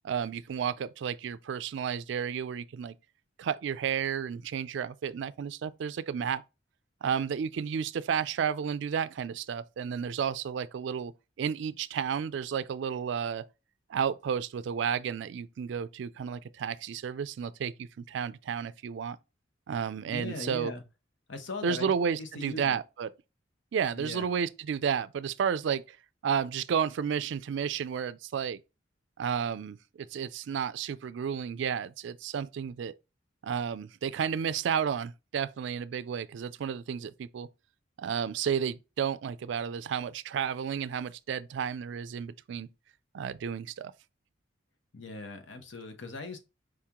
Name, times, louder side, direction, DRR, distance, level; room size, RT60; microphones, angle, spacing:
voice 1, 0.0-2.9 3.4-6.4 7.0-11.1 11.4-13.4 13.9-19.2 19.7-20.7 21.6-23.1 23.7-26.0 26.2-28.6 29.2-32.9 33.4-37.5 38.0-42.7 43.1-43.9, right 7 dB, 65° right, 0.3 m, -32 dB
voice 2, 20.1-20.8 21.3-22.8 24.0-24.3 44.9-46.4, left 3 dB, 75° left, 0.9 m, -40 dB
4.8 x 3.6 x 2.9 m
head